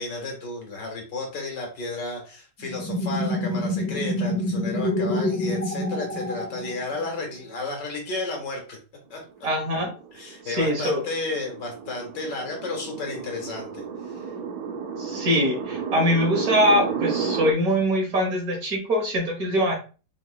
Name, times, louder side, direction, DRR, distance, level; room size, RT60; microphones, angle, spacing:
voice 1, 0.0-8.8 9.1-9.2 10.1-14.3, left 3 dB, 70° left, 1 dB, 2.2 m, -32 dB
sound 1, 2.6-7.1, left 1 dB, 5° left, 1.2 m, -27 dB
voice 2, 9.4-9.9 10.4-11.0 15.0-19.7, equal, 55° right, 1 dB, 1.8 m, -23 dB
sound 2, 9.5-17.5, right 6 dB, 70° right, 1.3 m, -32 dB
4.8 x 4.5 x 2.4 m, 0.35 s
omnidirectional pair, 2.0 m